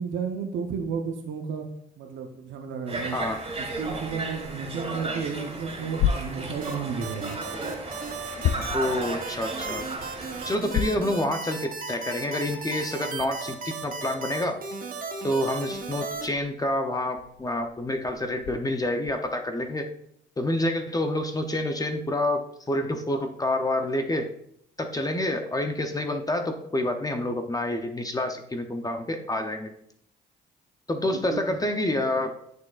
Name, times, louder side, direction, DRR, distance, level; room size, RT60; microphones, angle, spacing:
voice 1, 0.0-1.7 2.0-3.2 3.6-7.4 31.1-31.5, right 6 dB, 75° right, 3 dB, 0.8 m, -32 dB
Conversation, 2.9-10.6, right 2 dB, 30° right, 2.2 m, -35 dB
sound 1, 5.9-7.0 7.6-9.1 9.6-11.2 11.6-11.7 12.3-12.4 13.1-19.3, left 9 dB, 80° left, 0.4 m, -33 dB
sound 2, 6.6-16.3, right 4 dB, 45° right, 1.0 m, -36 dB
voice 2, 8.7-9.8 10.4-14.6 15.2-19.9 20.4-24.3 24.8-29.7 30.9-32.3, left 1 dB, 20° left, 5 dB, 0.6 m, -28 dB
7.3 x 6.3 x 2.4 m, 0.72 s
cardioid pair, 90°, 20 cm